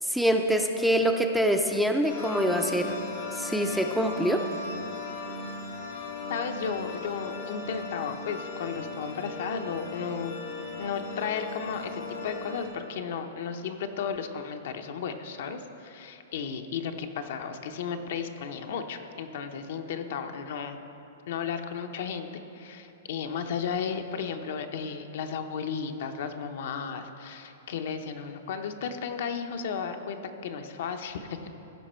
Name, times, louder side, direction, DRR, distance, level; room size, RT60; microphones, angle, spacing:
voice 1, 0.0-2.9 3.3-4.4, equal, ahead, 4 dB, 0.4 m, -25 dB
sound 1, 2.0-12.7, left 3 dB, 90° left, 2.5 m, -37 dB
voice 2, 6.3-10.3 10.8-20.8 21.3-31.5, left 6 dB, 65° left, 6 dB, 0.7 m, -34 dB
15.5 x 5.3 x 4.4 m, 2.9 s
hypercardioid pair, 145°, 0 cm